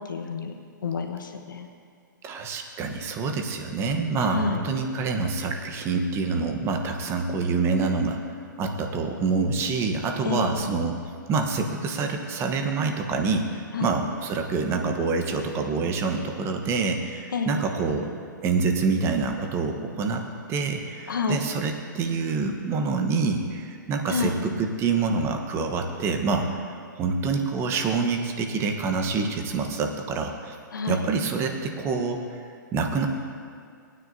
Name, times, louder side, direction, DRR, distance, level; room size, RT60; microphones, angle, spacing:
voice 1, 0.1-0.5 0.8-1.7 4.3-4.6 10.2-10.6 13.7-14.0 17.3-17.6 21.1-21.4 24.1-24.3 30.7-31.0, left 4 dB, 80° left, 4 dB, 1.2 m, -28 dB
voice 2, 2.2-8.2 8.6-11.0 11.3-18.1 18.4-20.2 20.5-26.5 27.0-30.6 30.9-32.4 32.7-33.1, right 4 dB, 25° right, 4 dB, 1.1 m, -26 dB
18.5 x 9.6 x 2.7 m, 2.2 s
hypercardioid pair, 130°, 11 cm